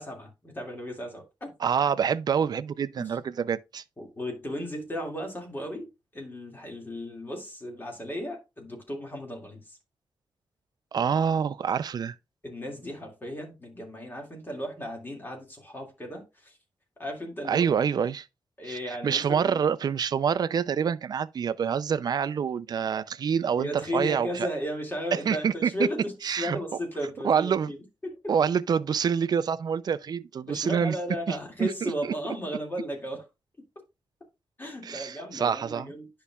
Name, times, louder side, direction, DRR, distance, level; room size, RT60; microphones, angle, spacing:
voice 1, 0.0-1.5 3.0-3.1 4.0-9.8 12.4-16.6 17.0-17.8 18.6-19.6 23.6-28.3 30.5-33.2 34.6-36.1, equal, 25° left, 2.1 m, -35 dB
voice 2, 1.6-3.8 10.9-12.2 17.4-18.3 18.6-24.5 25.1-25.9 26.2-26.6 27.2-27.7 28.3-31.0 31.3-31.9 34.8-35.9, right 7 dB, 50° right, 0.4 m, -26 dB
10.5 x 5.5 x 2.3 m
wide cardioid pair, 140°, 9 cm